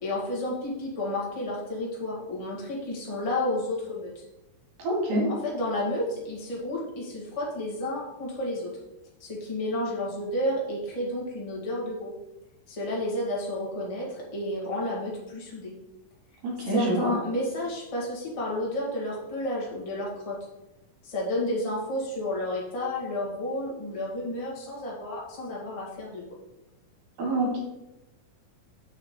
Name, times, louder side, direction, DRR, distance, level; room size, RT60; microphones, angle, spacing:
voice 1, 0.0-4.2 5.3-8.7 9.2-12.1 12.7-15.7 16.7-20.4 21.0-26.2, left 1 dB, 25° left, -5 dB, 0.7 m, -31 dB
voice 2, 4.8-5.3 16.4-17.1 27.2-27.6, right 1 dB, 70° right, -2 dB, 3.9 m, -26 dB
6.8 x 5.2 x 4.3 m, 0.95 s
omnidirectional pair, 4.1 m